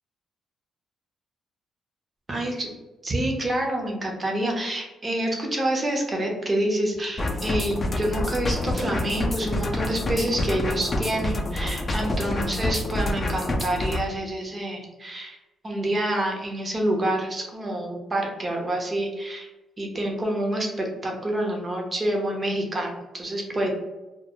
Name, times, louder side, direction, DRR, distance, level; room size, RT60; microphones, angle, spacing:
voice 1, 2.3-2.7 3.0-15.4 15.6-19.5 19.8-23.7, right 1 dB, 30° right, 1 dB, 0.7 m, -27 dB
sound 1, 7.2-14.0, left 1 dB, 35° left, 0.4 m, -27 dB
2.2 x 2.1 x 2.9 m, 1.0 s
cardioid pair, 70°, 0 cm